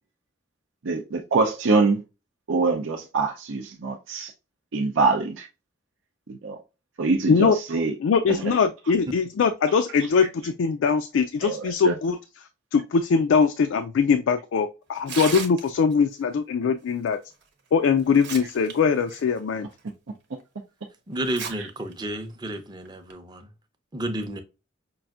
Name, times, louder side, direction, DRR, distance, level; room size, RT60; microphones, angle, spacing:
voice 1, 0.8-2.0 2.5-4.3 4.7-5.5 6.3-6.6 7.0-8.0 8.3-8.6 10.0-10.3 11.4-12.0 21.6-21.7, right 3 dB, 80° right, 0.6 m, -24 dB
voice 2, 8.0-12.2 12.7-17.2 17.7-19.7, left 5 dB, 75° left, 0.3 m, -22 dB
Tearing, 15.0-15.9 17.4-17.5 18.0-18.7 19.1-19.2 19.9-20.0 21.2-21.5 21.9-22.0 22.9-23.1, right 6 dB, 60° right, 1.0 m, -34 dB
voice 3, 21.1-23.5 23.9-24.4, right 1 dB, 20° right, 0.6 m, -31 dB
5.5 x 2.5 x 2.4 m
head